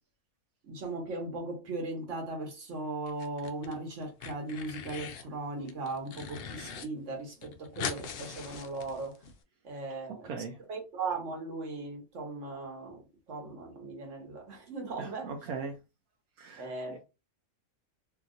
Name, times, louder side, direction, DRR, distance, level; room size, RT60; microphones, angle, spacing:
voice 1, 0.6-9.2 9.6-10.3 10.7-15.3 16.6-17.0, right 3 dB, 55° right, 1.4 m, -38 dB
sound 1, 3.1-3.7 4.0-5.3 5.7-6.9 7.1-7.2 7.4-9.3, left 6 dB, 65° left, 0.6 m, -40 dB
voice 2, 10.2-10.6 15.0-15.8 16.4-17.0, right 4 dB, 80° right, 1.1 m, -39 dB
2.8 x 2.8 x 2.5 m
omnidirectional pair, 1.6 m